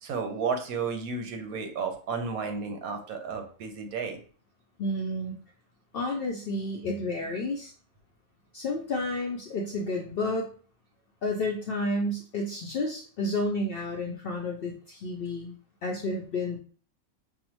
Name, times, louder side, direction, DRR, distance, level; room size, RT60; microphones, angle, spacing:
voice 1, 0.0-4.2, right 5 dB, 85° right, 5 dB, 1.2 m, -32 dB
voice 2, 4.8-5.4 5.9-7.7 8.5-10.5 11.2-15.5 15.8-16.6, left 2 dB, 70° left, 1 dB, 0.5 m, -31 dB
5.6 x 2.0 x 2.9 m, 0.42 s
omnidirectional pair, 1.5 m